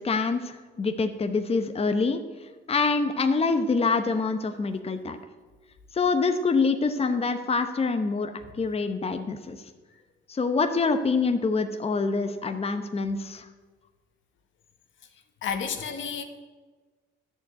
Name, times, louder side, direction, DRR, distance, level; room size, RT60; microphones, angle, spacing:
voice 1, 0.0-2.2 2.7-5.2 5.9-8.3 8.6-9.6 10.3-13.4, left 4 dB, 30° left, 7 dB, 0.9 m, -25 dB
voice 2, 15.4-16.2, left 7 dB, 75° left, 6 dB, 1.6 m, -31 dB
11.0 x 7.0 x 9.1 m, 1.3 s
cardioid pair, 90°, 20 cm